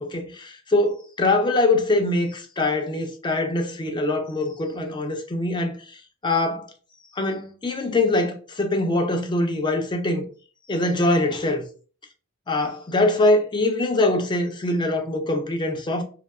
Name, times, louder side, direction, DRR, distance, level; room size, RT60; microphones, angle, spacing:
voice 1, 0.0-6.7 7.1-10.3 10.7-11.6 12.5-16.0, left 2 dB, 20° left, 0.4 m, -23 dB
2.6 x 2.1 x 2.3 m
head